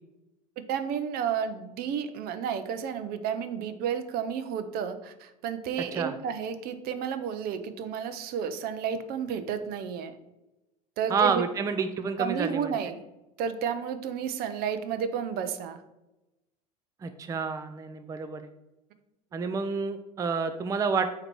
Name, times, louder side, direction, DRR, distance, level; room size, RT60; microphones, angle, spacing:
voice 1, 0.7-10.1 11.0-11.4 12.2-13.0 13.4-15.8 19.3-19.4, right 7 dB, 50° right, 10 dB, 0.7 m, -31 dB
voice 2, 11.1-12.8 17.0-18.5 19.3-21.1, right 5 dB, 15° right, 8 dB, 0.4 m, -29 dB
8.6 x 3.0 x 4.5 m, 0.98 s
hypercardioid pair, 80°, 20 cm